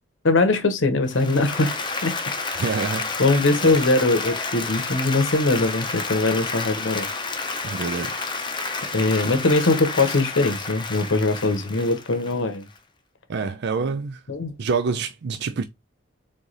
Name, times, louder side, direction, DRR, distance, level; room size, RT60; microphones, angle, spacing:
voice 1, 0.2-1.7 2.0-2.1 3.2-7.1 8.9-12.7 14.3-14.5, left 2 dB, 70° left, 0.9 m, -21 dB
Applause, 1.0-12.8, left 3 dB, 25° left, 0.6 m, -30 dB
voice 2, 2.6-3.1 3.6-3.7 7.6-8.2 13.3-14.2 14.6-15.6, right 5 dB, 60° right, 0.4 m, -27 dB
3.7 x 3.2 x 4.0 m
head